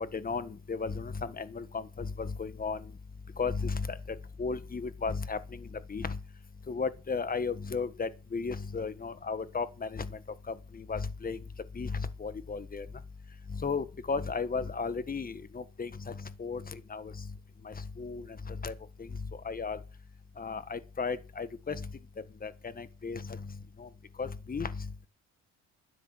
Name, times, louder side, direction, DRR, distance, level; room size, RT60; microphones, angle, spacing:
voice 1, 0.1-2.8 3.4-4.0 4.4-6.2 6.7-10.1 10.5-11.4 11.7-12.9 13.5-16.1 16.4-17.1 17.6-18.7 19.0-19.1 19.4-19.8 20.4-21.9 22.4-23.4 23.8-23.9 24.2-25.1, left 4 dB, 30° left, 1.5 m, -35 dB
12.5 x 9.8 x 6.2 m
cardioid pair, 90°, 30 cm